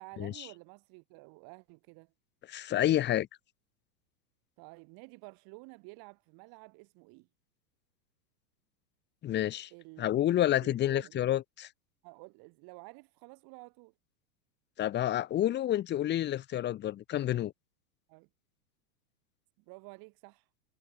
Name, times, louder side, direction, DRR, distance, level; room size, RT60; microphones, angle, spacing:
voice 1, 0.0-2.1 4.6-7.3 9.7-10.2 10.6-11.3 12.0-13.9 18.1-18.3 19.7-20.5, right 29 dB, 45° right, 5.9 m, -51 dB
voice 2, 2.5-3.3 9.2-9.7 10.0-11.4 14.8-17.5, left 12 dB, 20° left, 1.0 m, -29 dB
supercardioid pair, 140°, 49 cm